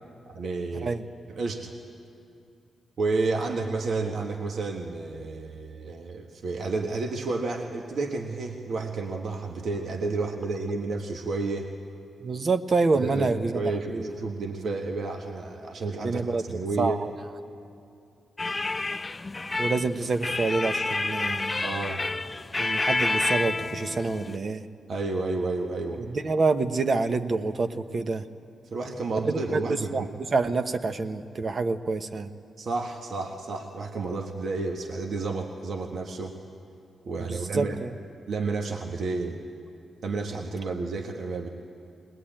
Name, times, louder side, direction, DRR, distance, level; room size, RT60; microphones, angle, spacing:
voice 1, 0.3-0.9 1.3-1.7 3.0-11.7 13.0-17.0 21.6-22.0 24.9-26.0 28.7-30.1 32.6-36.3 37.1-37.8 38.3-39.4 40.0-41.5, right 3 dB, 65° right, 2 dB, 1.5 m, -31 dB
voice 2, 12.2-13.5 13.9-14.1 16.0-16.4 16.8-17.1 19.6-21.7 22.6-24.6 26.1-28.2 29.2-32.3 37.3-37.9, right 3 dB, 50° right, 8 dB, 1.1 m, -27 dB
sound 1, 18.4-24.4, left 3 dB, 30° left, 0.5 m, -29 dB
20.5 x 20.0 x 8.9 m, 2.5 s
supercardioid pair, 55°, 0 cm